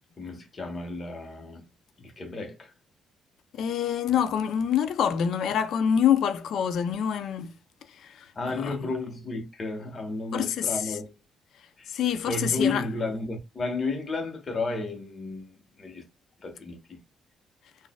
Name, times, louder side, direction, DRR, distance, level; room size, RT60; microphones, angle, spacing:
voice 1, 0.2-1.7 2.0-2.7 8.3-11.1 11.8-12.0 12.2-16.1 16.4-17.0, left 3 dB, 40° left, 1.2 m, -32 dB
voice 2, 3.5-7.5 8.0-8.3 8.6-8.8 10.3-10.7 11.9-12.8, left 8 dB, 70° left, 0.5 m, -26 dB
4.0 x 2.5 x 2.2 m
cardioid pair, 90°, 0 cm